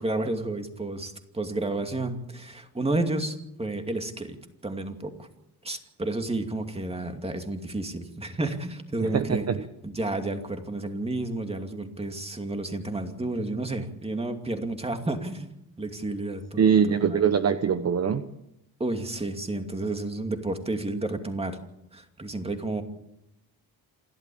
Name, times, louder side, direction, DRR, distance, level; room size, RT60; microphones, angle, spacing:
voice 1, 0.0-4.4 4.6-5.3 5.6-9.4 9.8-15.5 15.8-17.2 18.8-21.6 21.9-22.8, right 2 dB, 15° right, 5 dB, 2.6 m, -31 dB
voice 2, 9.0-9.6 16.6-18.2, right 7 dB, 40° right, 10 dB, 1.0 m, -23 dB
27.5 x 12.5 x 8.7 m, 0.85 s
cardioid pair, 115°, 39 cm